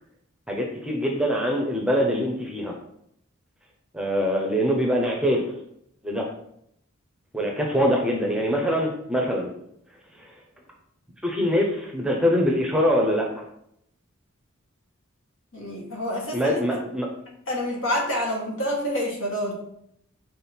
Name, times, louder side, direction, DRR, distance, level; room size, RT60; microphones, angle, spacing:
voice 1, 0.5-2.7 3.9-5.5 6.0-6.3 7.3-9.5 11.2-13.5 16.3-17.1, equal, 5° right, 0 dB, 0.8 m, -23 dB
voice 2, 15.5-16.8 17.5-19.6, equal, 65° left, -2 dB, 1.8 m, -28 dB
5.4 x 3.8 x 4.5 m, 0.72 s
head